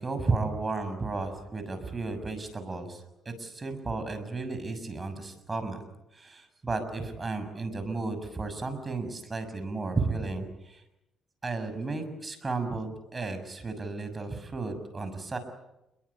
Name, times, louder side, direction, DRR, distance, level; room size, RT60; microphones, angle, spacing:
voice 1, 0.0-5.8 6.1-10.8 11.4-15.4, right 3 dB, 25° right, 9 dB, 6.6 m, -33 dB
29.0 x 22.5 x 8.4 m, 0.90 s
cardioid pair, 90°, 0 cm